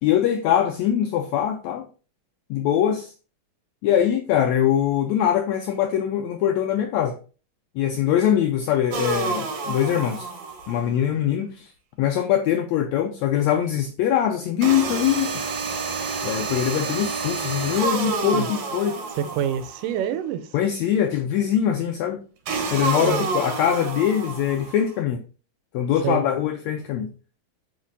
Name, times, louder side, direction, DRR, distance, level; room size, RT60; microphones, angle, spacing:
voice 1, 0.0-1.9 2.5-3.1 3.8-7.2 7.7-10.3 10.7-11.7 12.0-15.4 16.2-19.0 20.5-22.2 22.7-25.2 25.7-27.1, left 10 dB, 85° left, 1.6 m, -22 dB
sound 1, 8.9-10.9 14.6-19.9 22.5-24.9, right 4 dB, 65° right, 2.1 m, -29 dB
voice 2, 19.1-20.5 23.0-23.3 26.0-26.2, right 9 dB, 80° right, 2.2 m, -27 dB
7.4 x 4.9 x 2.6 m
omnidirectional pair, 3.8 m